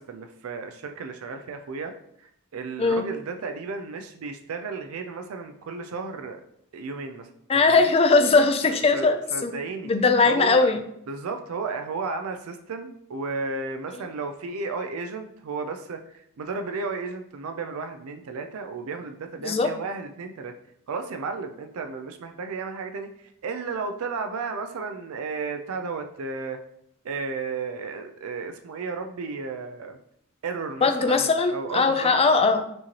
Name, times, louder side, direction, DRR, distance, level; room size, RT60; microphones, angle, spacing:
voice 1, 0.0-1.9 2.2-6.4 6.7-7.9 8.9-9.9 10.2-10.7 11.1-20.5 20.9-26.6 27.0-30.0 30.4-32.1, right 4 dB, 70° right, 7 dB, 0.4 m, -33 dB
voice 2, 7.5-9.5 9.8-10.8 19.4-19.7 30.8-32.6, left 4 dB, 25° left, 7 dB, 0.4 m, -20 dB
6.1 x 3.0 x 2.9 m, 0.73 s
head